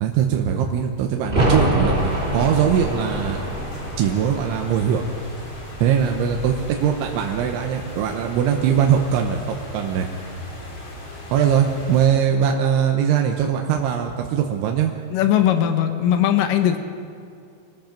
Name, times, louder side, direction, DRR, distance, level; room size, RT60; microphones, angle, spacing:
voice 1, 0.0-3.4 4.0-5.0 5.8-10.1 11.3-14.9, right 8 dB, 75° right, 2 dB, 3.3 m, -21 dB
sound 1, 1.2-6.8 7.1-7.2, right 1 dB, 15° right, 2.4 m, -25 dB
sound 2, 1.9-12.1, left 1 dB, 35° left, 3.5 m, -37 dB
voice 2, 15.1-16.8, left 10 dB, 75° left, 7 dB, 2.0 m, -19 dB
26.0 x 19.0 x 5.2 m, 2.4 s
omnidirectional pair, 5.6 m